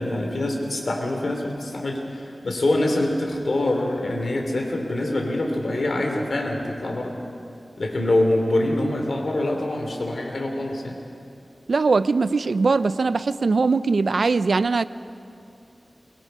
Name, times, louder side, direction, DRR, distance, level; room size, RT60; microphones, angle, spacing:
voice 1, 0.0-7.1 7.8-11.0, left 1 dB, 75° left, 2 dB, 3.1 m, -25 dB
voice 2, 11.7-14.9, right 4 dB, 85° right, 15 dB, 0.4 m, -21 dB
23.0 x 21.5 x 5.5 m, 2.7 s
wide cardioid pair, 60°, 0 cm